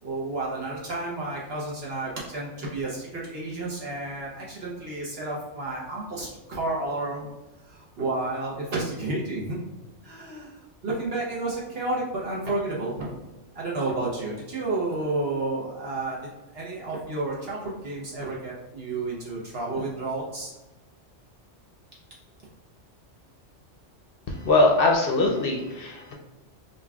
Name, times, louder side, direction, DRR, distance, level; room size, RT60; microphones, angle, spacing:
voice 1, 0.0-7.3 7.7-9.6 10.0-13.2 13.5-16.3 16.5-20.5, right 2 dB, 60° right, -4 dB, 1.0 m, -31 dB
voice 2, 24.3-26.1, left 2 dB, 60° left, 1 dB, 0.7 m, -22 dB
5.2 x 2.7 x 2.3 m, 1.1 s
omnidirectional pair, 1.2 m